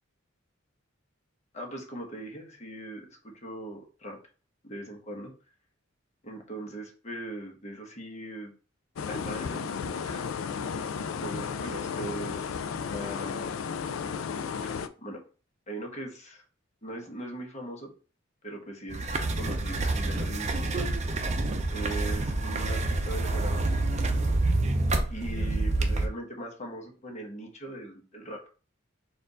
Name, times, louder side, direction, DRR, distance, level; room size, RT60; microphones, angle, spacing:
voice 1, 1.5-4.2 4.6-5.3 6.2-8.5 9.0-10.3 11.2-12.6 12.9-14.0 14.6-14.7 15.0-15.2 15.7-16.4 16.8-17.9 18.4-20.9 21.7-23.6 25.1-28.6, right 1 dB, 35° left, 1 dB, 1.1 m, -40 dB
sound 1, 9.0-14.9, left 6 dB, 85° left, 0.4 m, -33 dB
sound 2, 18.9-26.1, right 2 dB, 35° right, 0.6 m, -27 dB
4.3 x 2.5 x 3.9 m, 0.36 s
head